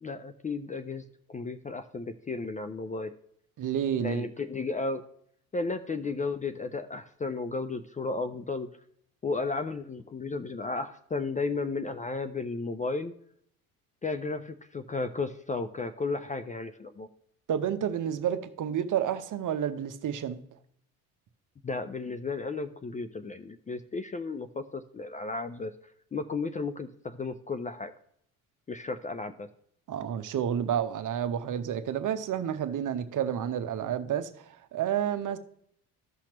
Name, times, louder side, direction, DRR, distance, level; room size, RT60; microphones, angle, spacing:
voice 1, 0.0-3.1 4.0-5.0 5.5-8.7 9.2-13.1 14.0-17.1 21.6-25.7 26.1-27.9 28.7-29.5, left 3 dB, 20° left, 0.5 m, -34 dB
voice 2, 3.6-4.3 17.5-20.4 29.9-35.4, right 9 dB, 45° right, 1.0 m, -30 dB
14.5 x 5.8 x 3.0 m
hypercardioid pair, 60°, 45 cm